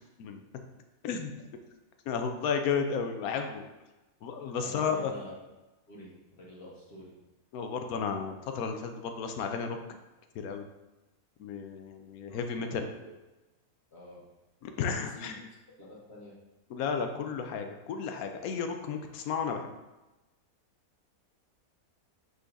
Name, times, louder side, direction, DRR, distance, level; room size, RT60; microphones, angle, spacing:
voice 1, 2.1-3.6 4.2-5.1 7.5-9.8 10.3-10.6 11.4-12.9 14.6-15.4 16.7-19.7, left 6 dB, 80° left, 6 dB, 1.0 m, -33 dB
voice 2, 4.6-5.3 5.9-7.2 12.3-13.1 13.9-14.2 14.9-15.4 15.8-16.3, left 1 dB, 45° left, -5 dB, 1.4 m, -48 dB
5.0 x 4.0 x 2.6 m, 1.0 s
omnidirectional pair, 1.6 m